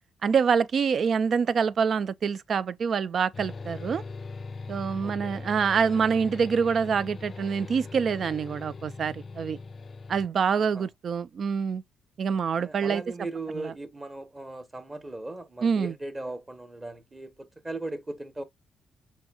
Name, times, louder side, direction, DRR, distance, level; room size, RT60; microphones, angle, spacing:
voice 1, 0.2-4.0 4.7-9.6 10.1-11.8 12.2-13.0 13.6-13.7 15.6-15.9, right 6 dB, 50° right, 0.3 m, -26 dB
sound 1, 3.3-10.3, left 4 dB, 40° left, 0.4 m, -40 dB
voice 2, 5.0-5.5 10.6-10.9 12.5-18.4, right 2 dB, 20° right, 1.0 m, -38 dB
6.2 x 2.6 x 2.3 m
cardioid pair, 90°, 0 cm